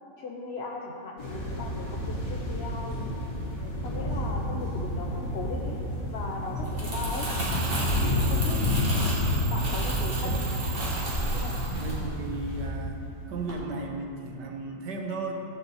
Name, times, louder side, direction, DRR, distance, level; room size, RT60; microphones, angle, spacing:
voice 1, 0.2-3.1 3.8-7.3 8.1-8.7 8.9-9.1 9.5-10.7 11.3-11.7, left 3 dB, 55° left, 0 dB, 0.7 m, -38 dB
sound 1, 1.2-12.7, left 1 dB, 85° left, 2.9 m, -30 dB
Crumpling crinkling, 6.5-12.9 13.2-13.5, right 1 dB, 30° right, 2.2 m, -35 dB
sound 2, 7.3-12.7, right 7 dB, 60° right, 1.1 m, -36 dB
voice 2, 11.7-13.0 13.3-15.3, right 3 dB, 75° right, 2 dB, 1.6 m, -35 dB
15.5 x 7.5 x 4.1 m, 2.8 s
omnidirectional pair, 1.9 m